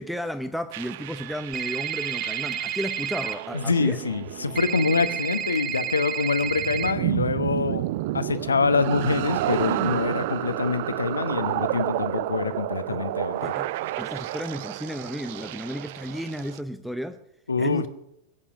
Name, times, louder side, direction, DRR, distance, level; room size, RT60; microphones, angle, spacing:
voice 1, 0.0-4.0 4.8-4.9 12.9-13.7 14.0-17.2 17.6-17.9, equal, ahead, 11 dB, 0.6 m, -33 dB
sound 1, 0.7-16.6, right 15 dB, 50° right, 0.4 m, -31 dB
sound 2, 1.5-3.3 4.6-6.9, right 9 dB, 30° right, 1.0 m, -30 dB
voice 2, 3.5-7.8 8.1-13.5 17.5-17.9, left 4 dB, 75° left, 12 dB, 0.9 m, -25 dB
21.5 x 8.7 x 6.4 m, 0.84 s
figure-of-eight pair, 90°, 0 cm